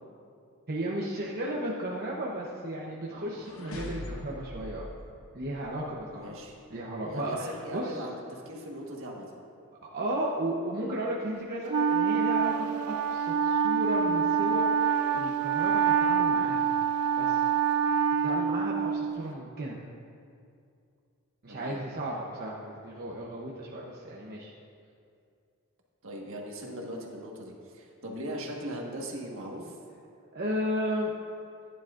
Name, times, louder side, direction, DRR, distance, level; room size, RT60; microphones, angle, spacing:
voice 1, 0.7-4.9 5.3-6.4 6.7-8.0 9.9-16.7 17.2-17.4 18.1-19.8 21.4-24.5 30.3-31.1, right 1 dB, 45° right, -4 dB, 0.9 m, -34 dB
sound 1, 2.9-6.0, left 1 dB, 65° left, 1.1 m, -42 dB
voice 2, 6.1-6.6 7.1-9.3 21.5-21.9 26.0-29.8, equal, 65° right, -1 dB, 1.6 m, -39 dB
Wind instrument woodwind instrument, 11.7-19.2, right 6 dB, 85° right, 0.4 m, -26 dB
15.0 x 10.5 x 2.5 m, 2.4 s
head